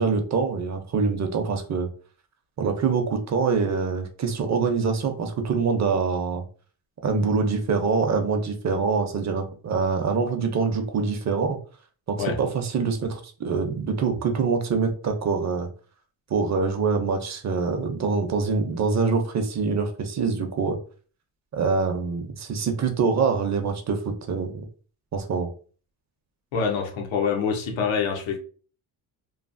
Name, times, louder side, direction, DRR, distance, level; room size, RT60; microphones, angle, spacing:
voice 1, 0.0-1.9 2.6-6.4 7.0-11.6 12.1-15.7 16.3-20.8 21.5-24.6 25.1-25.5, right 5 dB, 40° right, 0.5 m, -25 dB
voice 2, 26.5-28.4, left 6 dB, 85° left, 0.8 m, -25 dB
3.1 x 2.0 x 2.5 m
cardioid pair, 115°, 45 cm